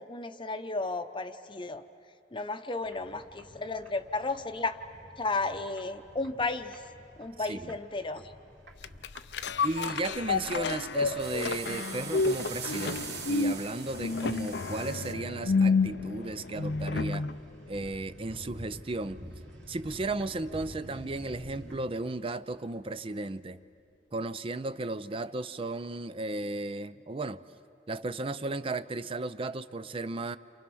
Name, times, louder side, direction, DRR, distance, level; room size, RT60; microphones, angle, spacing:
voice 1, 0.0-1.8 2.3-4.8 5.2-6.8 7.2-8.2, left 3 dB, 30° left, 8 dB, 0.8 m, -33 dB
sound 1, 2.8-21.8, equal, 85° right, 3.7 m, -50 dB
sound 2, 8.8-17.4 17.8-17.9, left 4 dB, 70° left, 0.6 m, -30 dB
voice 2, 9.6-17.3 17.7-19.2 19.7-23.6 24.1-27.4 27.9-30.4, right 2 dB, 30° right, 13 dB, 0.5 m, -35 dB
sound 3, 11.2-15.1, right 7 dB, 65° right, 1.5 m, -42 dB
29.5 x 27.0 x 6.2 m, 2.4 s
head